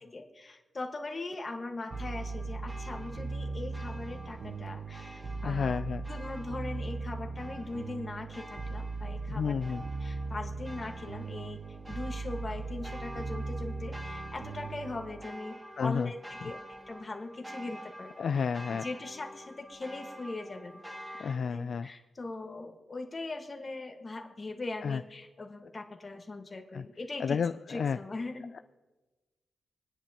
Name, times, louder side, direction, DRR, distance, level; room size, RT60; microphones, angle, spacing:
voice 1, 0.0-5.8 6.1-9.5 10.0-11.6 11.9-16.6 16.9-18.5 18.8-27.4 27.7-28.6, left 2 dB, 30° left, 3 dB, 1.5 m, -40 dB
sound 1, 1.9-21.4, equal, 5° right, 0.9 m, -48 dB
sound 2, 1.9-15.2, right 3 dB, 50° right, 0.6 m, -39 dB
voice 2, 5.4-6.1 9.3-9.9 15.8-16.1 16.4-16.5 18.2-18.9 21.2-21.9 24.8-25.0 26.7-26.9 27.2-28.0 28.5-28.6, left 6 dB, 55° left, 10 dB, 0.3 m, -31 dB
27.0 x 9.9 x 2.9 m, 1.2 s
wide cardioid pair, 140°, 0 cm